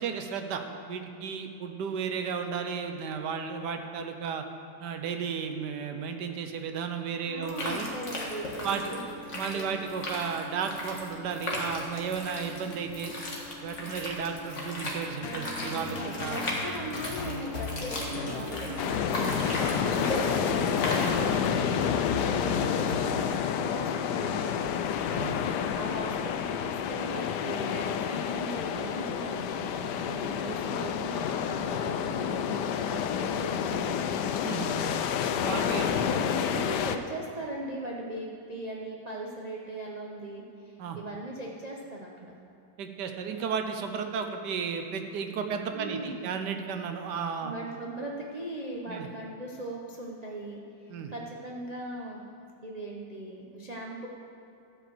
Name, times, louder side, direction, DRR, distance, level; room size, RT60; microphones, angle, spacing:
voice 1, 0.0-4.4 4.8-7.9 8.6-8.9 9.3-13.1 13.6-16.4 25.1-25.4 26.1-26.2 34.4-34.8 35.4-35.9 40.8-41.0 42.8-47.5 48.9-49.1 50.9-51.1, right 6 dB, 75° right, 6 dB, 1.3 m, -34 dB
voice 2, 7.3-9.0 9.5-9.8 15.8-24.6 25.7-34.1 35.4-42.3 45.7-46.3 47.4-52.2 52.6-54.1, right 1 dB, 35° right, -2 dB, 0.6 m, -39 dB
sound 1, 7.4-21.4, left 1 dB, 40° left, 1.8 m, -37 dB
sound 2, 15.2-23.7, left 3 dB, 60° left, 1.4 m, -37 dB
sound 3, 18.8-37.0, left 8 dB, 75° left, 1.1 m, -29 dB
13.0 x 5.3 x 7.6 m, 2.6 s
omnidirectional pair, 1.9 m